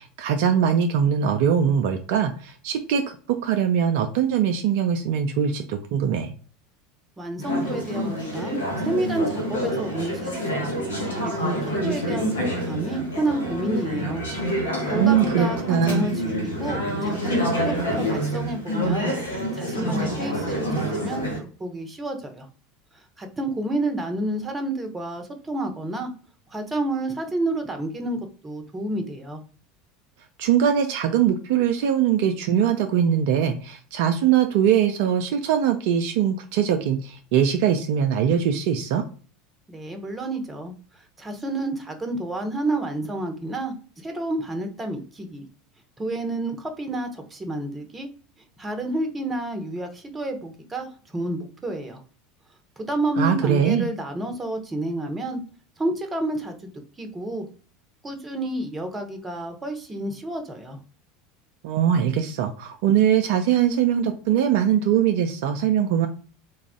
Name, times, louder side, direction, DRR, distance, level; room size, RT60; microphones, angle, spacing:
voice 1, 0.0-6.3 14.9-16.1 30.4-39.0 53.2-53.9 61.6-66.1, right 8 dB, 55° right, 6 dB, 0.4 m, -22 dB
voice 2, 7.2-10.6 11.2-12.3 12.6-14.2 14.9-19.1 19.5-22.5 23.2-26.1 26.5-29.4 39.7-40.7 41.2-45.4 46.0-48.1 48.6-50.9 51.1-52.0 52.8-55.4 55.8-56.7 57.0-57.5 58.0-60.8, right 1 dB, 15° right, 6 dB, 0.9 m, -29 dB
Conversation / Chatter, 7.4-21.4, equal, 70° left, 1.2 m, -27 dB
4.0 x 2.4 x 3.6 m, 0.40 s
figure-of-eight pair, 75°, 0 cm